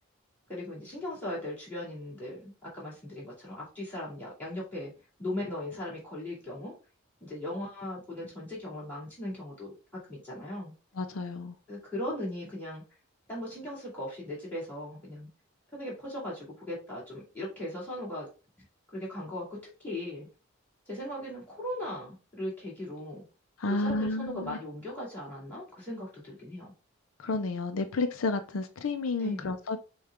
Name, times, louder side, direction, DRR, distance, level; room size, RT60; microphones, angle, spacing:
voice 1, 0.5-4.9 5.2-6.8 7.2-9.7 10.1-10.7 11.7-12.8 13.3-15.3 15.7-18.3 18.9-20.3 20.9-23.2 23.6-26.7 29.2-29.5, left 1 dB, 10° left, -4 dB, 2.5 m, -38 dB
voice 2, 11.0-11.6 23.6-24.6 27.2-29.8, left 3 dB, 75° left, 8 dB, 0.5 m, -31 dB
6.4 x 2.4 x 3.5 m, 0.32 s
head